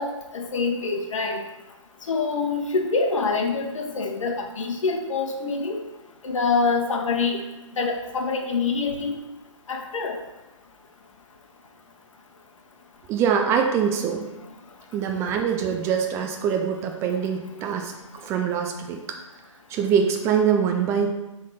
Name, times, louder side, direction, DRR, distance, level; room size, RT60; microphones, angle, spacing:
voice 1, 0.0-1.4 2.1-5.8 6.2-7.4 7.8-9.2 9.7-10.2, left 4 dB, 75° left, 3 dB, 1.1 m, -25 dB
voice 2, 13.1-14.2 14.9-17.9 18.2-19.0 19.7-21.1, right 7 dB, 15° right, 3 dB, 0.4 m, -23 dB
6.2 x 3.7 x 4.1 m, 1.0 s
hypercardioid pair, 135°, 17 cm